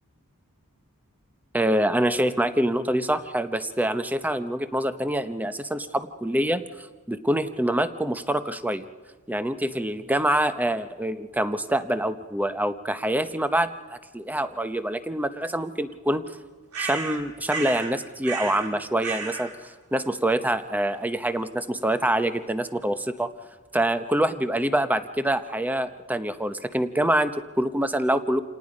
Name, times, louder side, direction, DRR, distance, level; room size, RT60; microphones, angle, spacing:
voice 1, 1.5-8.9 9.3-13.7 14.1-16.3 16.8-23.3 23.7-28.4, right 1 dB, 5° right, 10 dB, 0.8 m, -25 dB
sound 1, 16.7-17.9 18.2-18.7 19.0-19.5, right 4 dB, 75° right, 3.3 m, -32 dB
28.5 x 18.5 x 5.3 m, 1.3 s
head